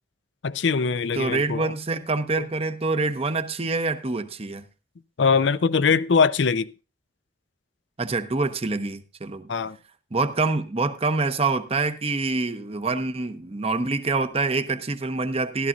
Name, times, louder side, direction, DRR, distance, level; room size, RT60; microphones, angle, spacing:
voice 1, 0.4-1.7 2.4-2.5 5.2-6.7 9.5-9.8, left 5 dB, 75° left, 0.5 m, -22 dB
voice 2, 1.1-4.6 8.0-9.5 10.1-15.7, right 3 dB, 30° right, 0.8 m, -26 dB
13.5 x 12.5 x 2.6 m
head